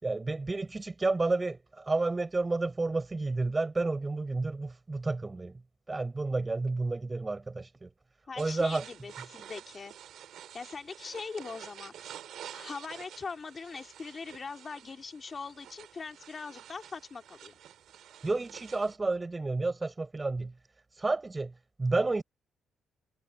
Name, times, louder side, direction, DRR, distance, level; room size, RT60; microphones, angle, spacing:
voice 1, 0.0-5.6 5.9-7.9 8.4-8.8 18.2-20.5 21.0-21.5 21.8-22.2, right 3 dB, 20° right, 4.9 m, -30 dB
voice 2, 8.3-9.9 10.5-12.2 12.5-17.5, left 4 dB, 35° left, 2.2 m, -41 dB
sound 1, 8.4-19.0, right 10 dB, 75° right, 5.0 m, -49 dB
cardioid pair, 90°, 0 cm